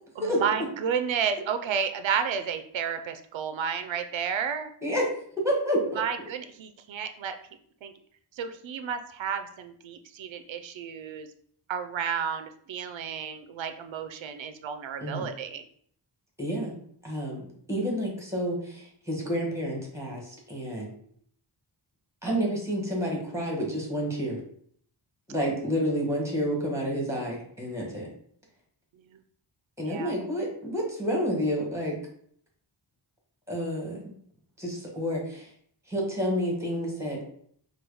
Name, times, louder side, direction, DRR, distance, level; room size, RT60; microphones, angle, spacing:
voice 1, 0.2-4.7 6.0-7.4 7.8-7.9 8.3-11.3 11.7-15.6 29.8-30.1, right 7 dB, 85° right, 8 dB, 0.5 m, -31 dB
voice 2, 4.8-5.1 5.4-6.0 15.0-15.3 16.4-16.7 17.0-17.4 17.7-20.9 22.2-24.4 25.3-28.1 29.8-32.0 33.5-34.1 34.6-35.5 35.9-37.2, equal, 5° right, -1 dB, 1.4 m, -29 dB
4.5 x 2.3 x 4.8 m, 0.62 s
wide cardioid pair, 140°, 45 cm